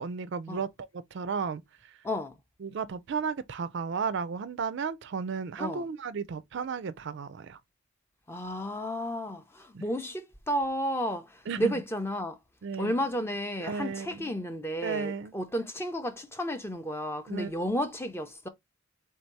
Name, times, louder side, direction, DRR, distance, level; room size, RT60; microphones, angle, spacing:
voice 1, 0.0-1.6 2.6-7.6 9.7-9.8 11.5-11.7 12.6-13.0 13.6-14.3 14.8-15.3 17.3-17.6, right 5 dB, 55° right, 0.4 m, -34 dB
voice 2, 8.3-12.4 12.8-18.5, equal, 10° left, 0.4 m, -32 dB
3.6 x 2.7 x 4.4 m
head